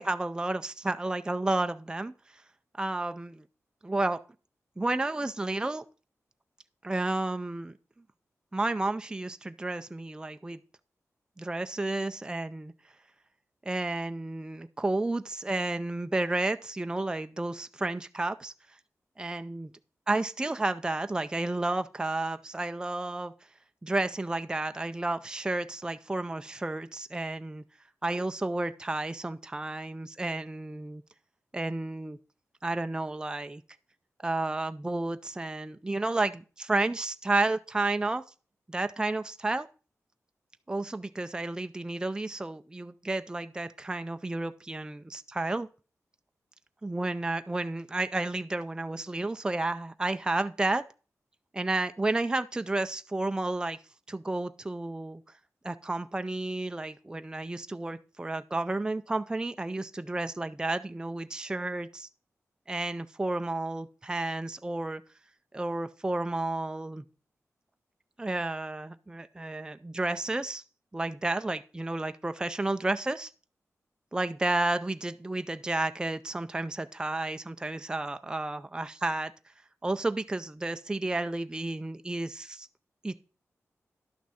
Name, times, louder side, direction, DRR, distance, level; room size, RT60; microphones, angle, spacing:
voice 1, 0.0-2.1 2.8-3.4 3.8-4.2 4.8-5.8 6.8-7.7 8.5-10.6 11.4-12.7 13.7-18.5 19.2-19.7 20.1-23.3 23.8-27.6 28.0-31.0 31.5-32.2 32.6-33.6 34.2-38.2 38.7-39.7 40.7-45.7 46.8-50.8 51.5-53.8 54.1-55.2 55.6-62.1 62.7-65.0 65.5-67.0 68.2-70.6 70.9-73.3 74.1-79.3 79.8-82.7 83.0-83.2, right 2 dB, 15° right, 0.4 m, -31 dB
11.0 x 6.0 x 4.2 m
wide cardioid pair, 85°, 5 cm